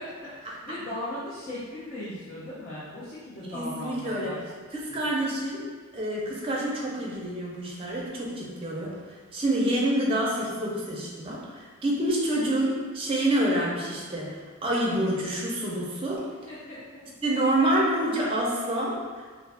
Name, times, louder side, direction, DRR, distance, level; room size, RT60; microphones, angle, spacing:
voice 1, 0.0-4.4 4.9-5.0 16.5-16.8, left 1 dB, 40° left, -12 dB, 0.6 m, -38 dB
voice 2, 3.5-4.3 4.7-5.6 5.9-9.0 9.3-16.3 17.2-19.0, right 1 dB, 25° right, -4 dB, 0.5 m, -27 dB
2.4 x 2.3 x 3.3 m, 1.5 s
head